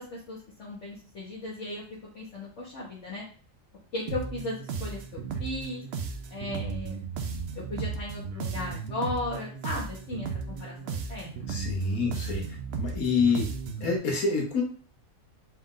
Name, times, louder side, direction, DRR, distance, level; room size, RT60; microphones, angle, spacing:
voice 1, 0.0-1.8 2.1-3.2 3.9-5.8 6.3-7.0 7.6-11.5, left 2 dB, 60° left, -6 dB, 1.3 m, -36 dB
sound 1, 4.1-14.0, right 5 dB, 60° right, 0.7 m, -35 dB
voice 2, 11.5-12.4 12.8-13.5 13.8-14.6, left 4 dB, 85° left, -1 dB, 1.6 m, -27 dB
4.3 x 2.5 x 3.7 m, 0.42 s
omnidirectional pair, 1.5 m